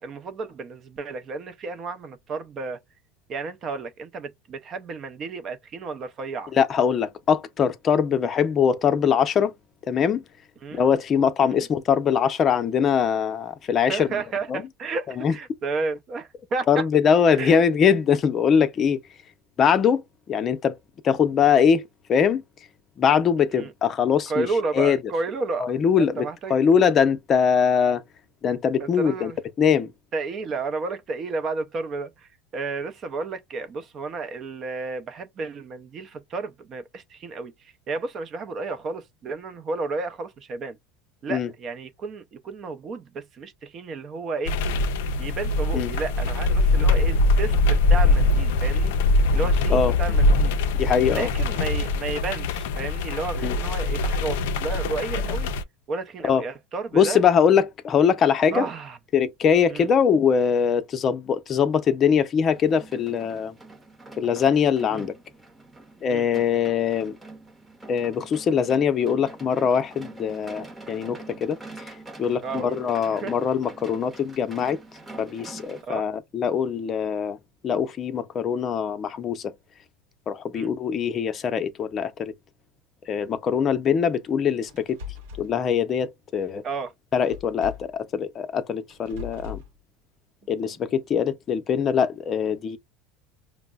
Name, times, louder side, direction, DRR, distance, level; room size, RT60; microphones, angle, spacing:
voice 1, 0.0-2.8 3.3-6.5 10.6-10.8 11.4-11.7 13.9-16.8 17.3-17.6 23.5-23.7 24.3-25.7 26.0-26.6 28.8-29.4 30.1-40.8 41.2-44.5 45.2-48.9 49.3-50.5 51.1-55.5 55.9-57.2 58.5-59.0 59.7-59.9 64.9-65.1 66.1-66.4 72.4-73.3 75.8-76.1 80.5-80.7 86.6-86.9, right 4 dB, 40° right, 0.5 m, -32 dB
voice 2, 6.5-9.5 9.9-10.2 10.7-14.1 14.5-14.6 15.2-15.3 16.7-19.0 19.6-20.0 20.3-20.8 21.0-21.8 22.1-22.4 23.0-24.5 24.7-25.0 25.6-28.0 28.4-29.3 29.6-29.9 41.3-41.5 45.7-45.9 49.7-50.0 50.8-51.3 53.4-53.6 56.2-56.4 56.9-58.7 59.1-63.6 64.2-65.2 66.0-67.2 67.9-71.9 72.2-74.8 75.2-77.4 77.6-79.5 80.3-82.3 83.1-85.0 85.4-86.6 87.1-89.6 90.5-92.8, left 7 dB, 35° left, 0.6 m, -22 dB
sound 1, 44.5-55.6, left 2 dB, 80° left, 0.3 m, -22 dB
sound 2, 62.4-75.8, right 2 dB, 10° right, 0.8 m, -44 dB
sound 3, 84.7-85.5 87.3-88.0 88.9-89.7, left 5 dB, 85° right, 0.9 m, -39 dB
5.1 x 2.0 x 2.3 m
supercardioid pair, 110°, 0 cm